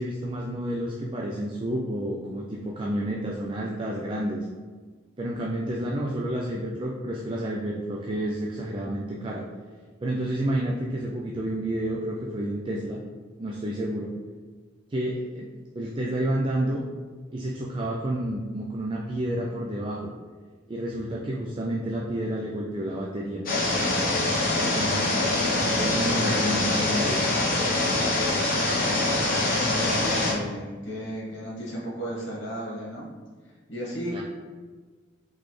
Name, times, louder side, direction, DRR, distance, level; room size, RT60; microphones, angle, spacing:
voice 1, 0.0-4.5 5.2-9.5 10.0-13.0 13.4-14.1 14.9-15.5 15.7-16.8 17.3-20.1 20.7-23.4 24.6-27.2 34.1-34.2, right 1 dB, 25° right, -2 dB, 0.3 m, -30 dB
sound 1, 23.5-30.3, left 2 dB, 45° left, 1.0 m, -24 dB
voice 2, 29.2-33.1 33.7-34.2, equal, 65° left, -4 dB, 1.4 m, -34 dB
4.1 x 3.2 x 3.1 m, 1.4 s
head